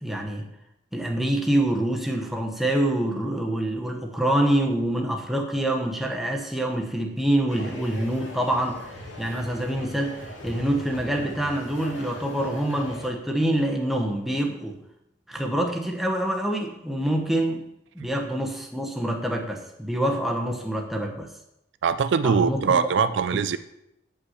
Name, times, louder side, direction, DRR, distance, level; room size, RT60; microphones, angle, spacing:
voice 1, 0.0-0.5 0.9-8.9 9.2-14.8 15.3-17.6 17.9-21.3 22.2-22.8 23.3-23.4, right 1 dB, ahead, 2 dB, 1.0 m, -26 dB
sound 1, 7.5-13.1, left 1 dB, 90° left, 2.0 m, -40 dB
voice 2, 21.8-23.6, right 6 dB, 70° right, 13 dB, 0.4 m, -22 dB
8.1 x 5.5 x 5.7 m, 0.84 s
head